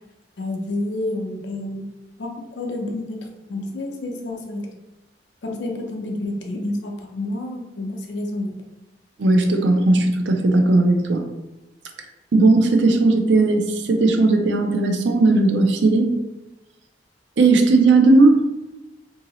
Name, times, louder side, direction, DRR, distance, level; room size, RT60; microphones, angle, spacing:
voice 1, 0.4-1.9 2.2-4.6 5.4-8.5, left 2 dB, 75° left, 2 dB, 0.6 m, -29 dB
voice 2, 9.2-11.2 12.3-16.1 17.4-18.4, right 2 dB, 80° right, 5 dB, 0.4 m, -16 dB
2.7 x 2.7 x 2.9 m, 1.0 s
head